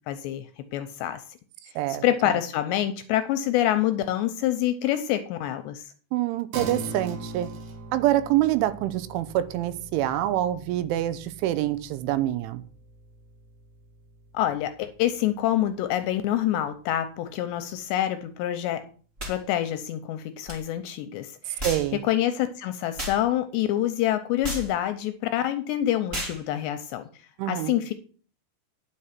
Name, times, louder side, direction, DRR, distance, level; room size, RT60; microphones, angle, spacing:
voice 1, 0.1-1.2 2.0-5.9 14.3-18.8 19.3-21.7 22.0-27.0 27.5-27.9, left 12 dB, 80° left, 9 dB, 2.6 m, -26 dB
voice 2, 6.1-7.5 7.9-12.6 21.6-22.0 27.4-27.8, right 14 dB, 85° right, 13 dB, 3.1 m, -26 dB
sound 1, 6.5-16.3, right 3 dB, 60° right, 3.0 m, -42 dB
sound 2, 19.2-19.4 20.5-20.6 21.6-21.9 23.0-23.2 24.4-24.7 26.1-26.4, equal, 20° right, 2.6 m, -32 dB
9.9 x 6.5 x 5.8 m, 0.41 s
omnidirectional pair, 5.5 m